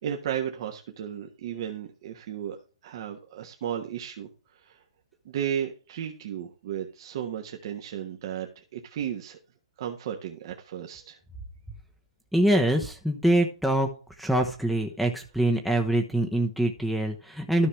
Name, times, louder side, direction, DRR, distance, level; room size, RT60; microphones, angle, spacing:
voice 1, 0.0-2.6 2.8-4.8 5.2-9.4 9.8-11.2, right 9 dB, 50° right, 3 dB, 1.4 m, -34 dB
voice 2, 12.3-13.9 14.2-17.7, right 1 dB, ahead, 1 dB, 0.9 m, -24 dB
13.0 x 5.7 x 3.2 m, 0.34 s
hypercardioid pair, 140°, 3 cm